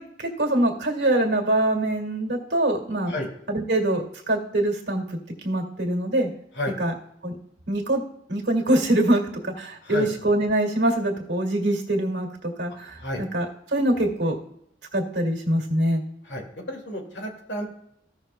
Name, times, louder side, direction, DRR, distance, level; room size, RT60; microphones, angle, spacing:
voice 1, 0.2-3.1 3.5-5.2 5.4-6.3 6.8-6.9 7.2-7.4 7.7-8.0 8.3-13.5 13.7-14.4 14.9-16.0, right 1 dB, 80° right, 2 dB, 2.0 m, -24 dB
voice 2, 16.3-17.6, left 1 dB, 90° left, 1 dB, 2.2 m, -31 dB
15.5 x 6.5 x 2.2 m, 0.73 s
head